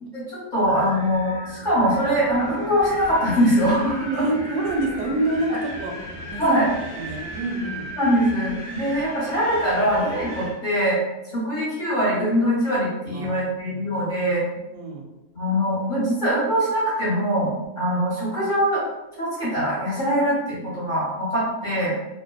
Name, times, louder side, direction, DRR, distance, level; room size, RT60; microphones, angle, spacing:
voice 1, 0.1-4.2 6.4-6.7 8.0-11.0 11.3-14.4 15.3-17.5 17.8-18.8 19.2-21.9, equal, 35° left, -9 dB, 0.8 m, -22 dB
Wind, 0.6-10.6, equal, 10° left, 0.9 m, -37 dB
voice 2, 4.0-5.9 6.3-6.6 6.9-7.9 8.8-8.9 13.1-14.0 14.7-15.0, right 1 dB, 85° right, 1 dB, 1.1 m, -27 dB
2.7 x 2.2 x 2.2 m, 1.0 s
omnidirectional pair, 1.7 m